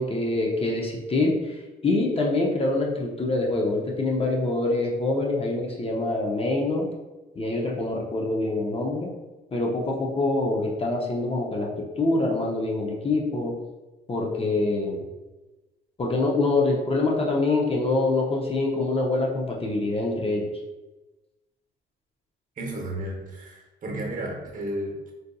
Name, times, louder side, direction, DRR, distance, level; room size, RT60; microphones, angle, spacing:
voice 1, 0.0-1.6 1.8-6.9 7.4-9.1 9.5-11.7 12.0-13.5 14.1-15.1 16.0-20.5, left 2 dB, 30° left, -1 dB, 0.6 m, -25 dB
voice 2, 22.6-25.1, right 1 dB, 45° right, 0 dB, 0.9 m, -33 dB
3.9 x 2.6 x 2.2 m, 1.1 s
cardioid pair, 90°, 20 cm